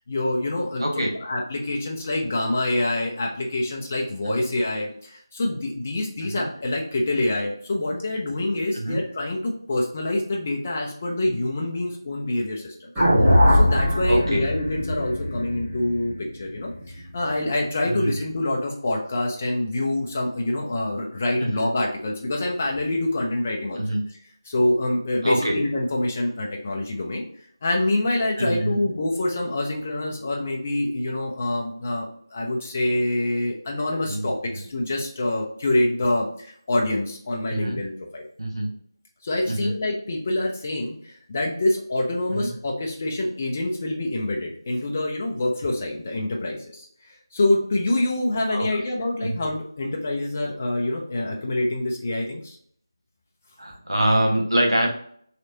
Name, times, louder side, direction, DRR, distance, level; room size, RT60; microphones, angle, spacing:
voice 1, 0.1-12.9 13.5-23.8 24.4-27.2 27.6-38.2 39.2-46.9 47.3-52.6, left 1 dB, 20° left, -1 dB, 0.5 m, -26 dB
voice 2, 0.8-1.1 4.4-4.5 6.3-6.5 8.7-9.0 14.1-14.4 17.9-18.2 21.4-21.7 23.8-24.0 25.2-25.6 28.4-28.8 34.1-34.3 37.5-37.8 38.4-38.7 39.5-39.7 42.3-42.5 48.5-48.7 49.3-49.4 53.6-54.9, right 1 dB, 80° right, 0 dB, 1.1 m, -24 dB
sound 1, 13.0-17.2, left 1 dB, 10° right, 1.0 m, -21 dB
3.2 x 3.1 x 2.6 m, 0.63 s
figure-of-eight pair, 170°, 2 cm